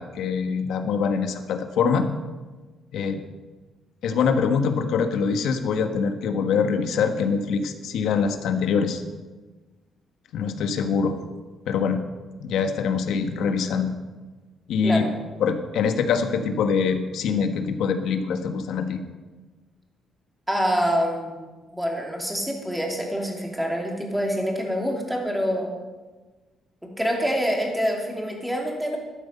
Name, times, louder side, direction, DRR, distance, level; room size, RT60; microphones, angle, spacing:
voice 1, 0.0-2.1 2.9-3.2 4.0-9.0 10.3-11.2 11.6-12.0 12.4-13.9 14.7-15.1 15.4-19.0, left 6 dB, 80° left, 6 dB, 1.4 m, -24 dB
voice 2, 20.5-21.4 21.7-25.7 26.8-29.0, equal, 5° right, 0 dB, 2.7 m, -26 dB
12.5 x 12.0 x 5.5 m, 1.3 s
cardioid pair, 130°, 0 cm